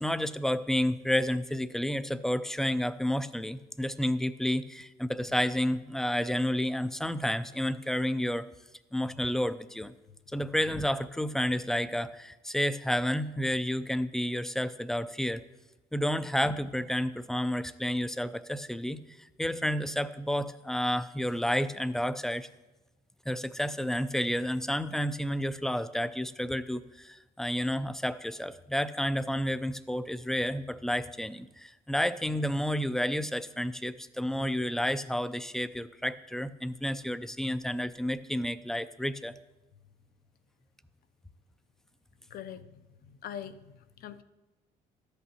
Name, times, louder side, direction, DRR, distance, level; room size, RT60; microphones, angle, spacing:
voice 1, 0.0-8.5 8.9-9.9 10.3-15.4 15.9-22.5 23.3-39.3, equal, 5° left, 13 dB, 0.3 m, -30 dB
voice 2, 42.3-44.2, left 9 dB, 60° left, 11 dB, 0.5 m, -43 dB
12.5 x 8.1 x 2.8 m, 1.1 s
cardioid pair, 110°, 17 cm